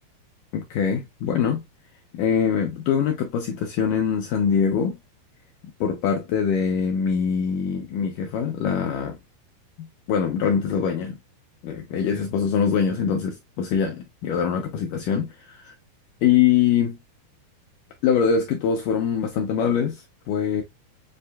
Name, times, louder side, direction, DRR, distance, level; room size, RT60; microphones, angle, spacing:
voice 1, 0.5-1.6 2.1-5.0 5.8-9.2 9.8-11.2 11.6-15.7 16.2-17.0 18.0-20.6, left 7 dB, 85° left, 1.8 m, -23 dB
7.6 x 2.6 x 2.2 m
omnidirectional pair, 4.4 m